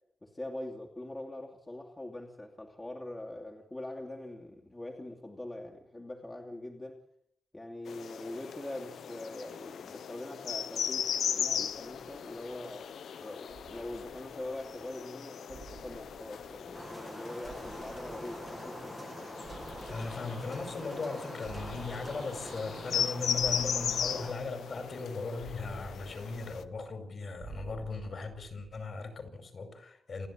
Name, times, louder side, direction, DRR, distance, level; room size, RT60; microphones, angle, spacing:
voice 1, 0.2-7.0 7.5-12.9 13.2-18.9, left 1 dB, 15° left, 2.8 m, -43 dB
sound 1, 7.9-26.6, left 8 dB, 90° left, 1.1 m, -38 dB
sound 2, 11.6-12.8 13.5-15.0 15.5-17.1 17.4-19.0 19.4-21.1 21.4-23.1 23.4-25.0 25.4-27.1 27.4-29.0, right 6 dB, 75° right, 3.8 m, -52 dB
sound 3, 16.7-24.3, right 1 dB, 10° right, 1.5 m, -45 dB
voice 2, 19.9-30.3, left 4 dB, 45° left, 5.3 m, -38 dB
29.0 x 11.0 x 8.7 m
wide cardioid pair, 135°, 0 cm